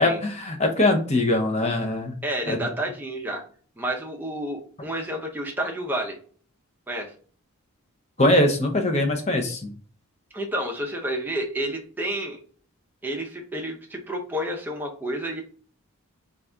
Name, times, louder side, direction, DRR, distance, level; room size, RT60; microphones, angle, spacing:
voice 1, 0.0-2.1 2.5-2.7 8.2-9.7, left 1 dB, 30° left, 4 dB, 0.6 m, -22 dB
voice 2, 2.2-3.4 3.8-6.2 6.9-7.1 10.3-12.4 13.0-15.4, right 1 dB, 10° right, 1 dB, 0.6 m, -30 dB
4.0 x 2.4 x 3.4 m, 0.43 s
head